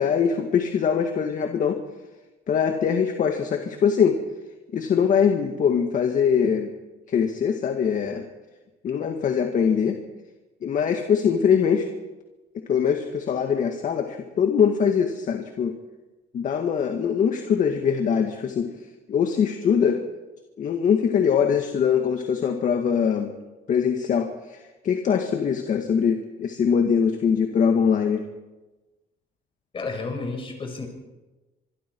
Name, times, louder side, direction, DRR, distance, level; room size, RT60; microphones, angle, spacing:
voice 1, 0.0-1.8 2.5-4.2 4.7-6.7 7.1-8.2 8.8-10.0 10.6-11.9 12.7-15.7 16.3-18.7 19.1-20.0 20.6-23.3 23.7-28.2, left 7 dB, 50° left, 5 dB, 1.9 m, -22 dB
voice 2, 29.7-30.9, left 3 dB, 30° left, 4 dB, 5.9 m, -31 dB
25.5 x 22.5 x 4.7 m, 1.1 s
cardioid pair, 110°, 17 cm